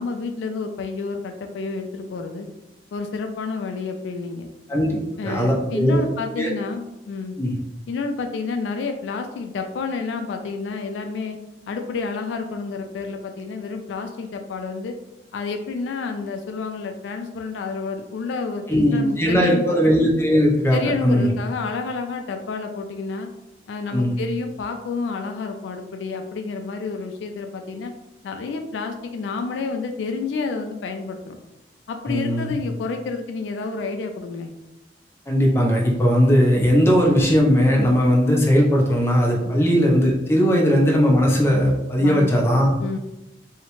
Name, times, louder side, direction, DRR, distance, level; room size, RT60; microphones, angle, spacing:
voice 1, 0.0-2.5 2.9-4.5 5.2-7.4 7.9-11.4 11.7-15.0 15.3-19.8 20.7-23.3 23.7-27.9 28.2-31.4 31.9-34.5 39.4-39.6 42.0-42.3 42.8-43.0, left 4 dB, 85° left, 5 dB, 0.3 m, -29 dB
voice 2, 5.2-6.0 6.4-6.5 7.4-7.5 18.7-21.3 23.9-24.1 32.1-32.5 35.3-42.7, equal, 15° left, -1 dB, 0.4 m, -18 dB
2.7 x 2.1 x 2.9 m, 0.95 s
head